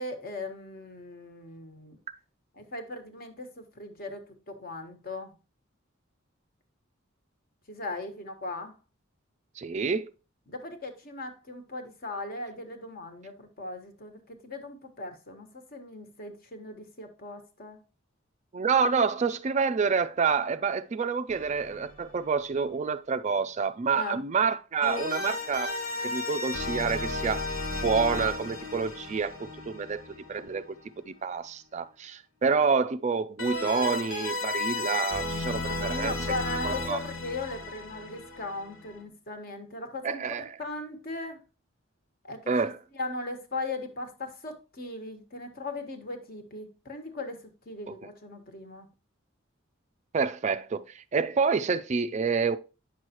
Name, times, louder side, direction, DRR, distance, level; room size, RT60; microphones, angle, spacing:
voice 1, 0.0-2.0 2.6-5.3 7.7-8.8 10.5-17.8 23.9-24.2 35.7-41.4 42.2-48.9, left 2 dB, 45° left, 1.4 m, -38 dB
voice 2, 9.6-10.1 18.5-25.7 26.0-27.4 27.7-30.0 30.3-30.6 31.1-36.1 36.6-37.0 40.0-40.5 42.5-42.8 47.9-48.0 50.1-52.6, right 5 dB, 35° right, 0.3 m, -28 dB
sound 1, 21.3-22.2 24.8-30.8 33.4-39.0, left 3 dB, 90° left, 2.4 m, -34 dB
9.0 x 6.3 x 2.9 m
head